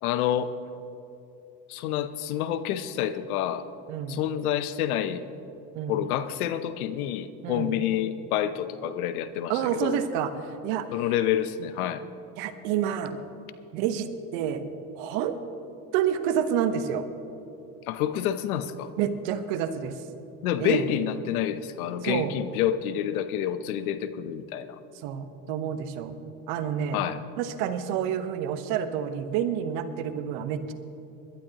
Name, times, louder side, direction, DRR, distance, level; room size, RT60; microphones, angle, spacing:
voice 1, 0.0-0.5 1.7-3.6 4.1-5.2 5.9-10.0 10.9-12.0 17.9-18.9 20.4-24.8 26.9-27.2, left 10 dB, 85° left, 12 dB, 0.8 m, -28 dB
voice 2, 3.9-4.2 5.7-6.0 7.4-7.7 9.5-10.3 10.6-10.9 12.4-13.1 13.7-14.6 15.0-15.4 15.9-17.0 19.0-19.9 20.6-20.9 22.0-22.3 25.0-26.1 26.5-27.0 27.4-30.7, right 9 dB, 75° right, 9 dB, 1.2 m, -28 dB
21.5 x 12.0 x 2.9 m, 2.8 s
hypercardioid pair, 75°, 42 cm